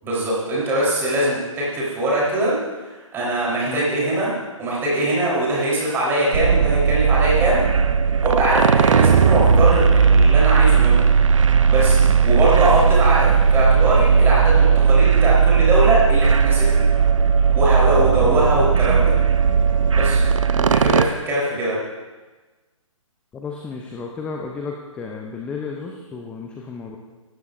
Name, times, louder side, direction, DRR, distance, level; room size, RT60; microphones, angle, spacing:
voice 1, 0.0-2.5 3.1-4.3 4.6-7.6 8.2-11.1 11.7-16.9 17.5-19.1 19.9-20.2 20.7-21.8, right 1 dB, 15° right, -5 dB, 3.6 m, -22 dB
sound 1, 6.3-21.0, right 6 dB, 65° right, 0.7 m, -16 dB
voice 2, 23.3-27.0, left 4 dB, 5° left, 0 dB, 0.5 m, -33 dB
16.5 x 13.5 x 2.5 m, 1.2 s
figure-of-eight pair, 140°, 17 cm